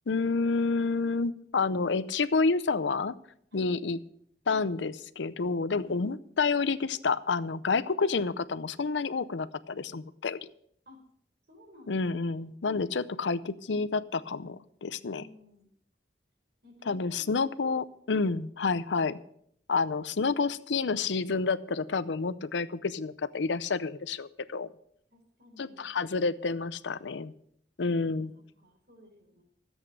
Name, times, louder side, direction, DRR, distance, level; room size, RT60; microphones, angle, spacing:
voice 1, 0.1-3.1 3.5-4.0 4.5-10.5 11.9-15.2 16.9-19.2 19.7-24.7 25.6-27.3 27.8-28.3, left 4 dB, 85° left, 15 dB, 0.6 m, -29 dB
voice 2, 5.7-6.0 10.9-11.0 11.5-12.5 12.8-13.4 15.0-15.7 16.6-17.6 18.1-18.4 25.1-25.9 28.0-28.1 28.4-29.4, left 2 dB, 65° right, 2 dB, 4.0 m, -55 dB
13.5 x 8.0 x 6.5 m, 0.67 s
head